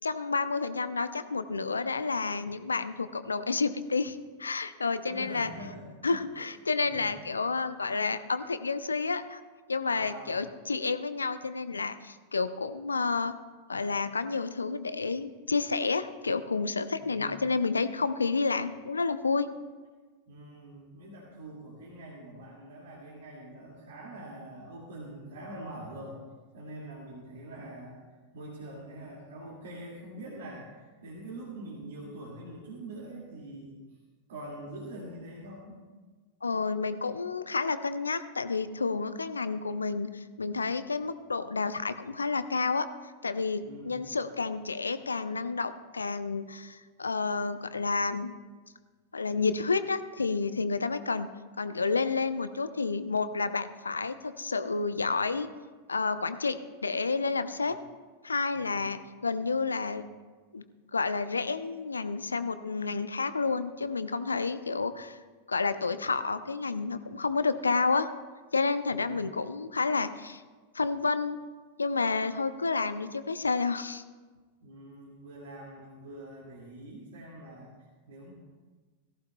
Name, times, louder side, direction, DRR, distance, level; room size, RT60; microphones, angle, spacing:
voice 1, 0.0-5.5 6.0-9.4 9.7-13.3 13.7-19.5 36.4-42.9 43.2-48.3 49.1-51.3 51.6-55.5 55.9-57.8 58.2-60.0 60.5-60.6 60.9-65.2 65.5-68.1 68.5-70.4 70.7-71.4 71.8-74.0, left 4 dB, 75° left, 12 dB, 0.5 m, -30 dB
voice 2, 5.0-6.2 6.9-7.1 9.9-10.3 17.0-17.4 20.3-26.2 26.5-28.0 28.3-33.7 34.3-35.8 43.6-44.1 58.5-58.9 68.9-69.1 74.6-77.7 78.1-78.3, right 1 dB, 60° right, -4 dB, 2.1 m, -44 dB
17.5 x 15.0 x 2.3 m, 1.4 s
figure-of-eight pair, 90°, 0 cm